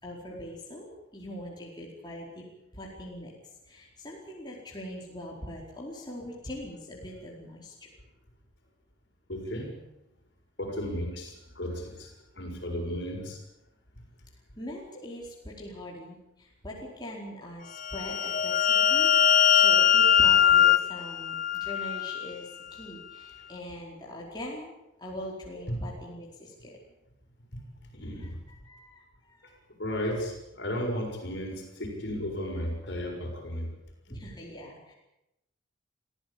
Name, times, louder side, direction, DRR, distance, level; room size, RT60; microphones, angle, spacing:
voice 1, 0.0-0.9 1.1-2.4 2.7-3.3 3.6-7.7 14.6-24.7 25.0-26.8 28.2-29.5 34.1-34.9, left 1 dB, 20° left, -4 dB, 4.7 m, -42 dB
voice 2, 9.3-9.7 10.6-13.4 14.0-14.1 23.4-23.5 25.7-25.8 27.8-28.4 29.4-33.7, equal, 55° left, 1 dB, 6.7 m, -34 dB
sound 1, 17.8-22.3, left 9 dB, 40° left, 0.8 m, -22 dB
26.0 x 15.0 x 8.8 m, 0.91 s
head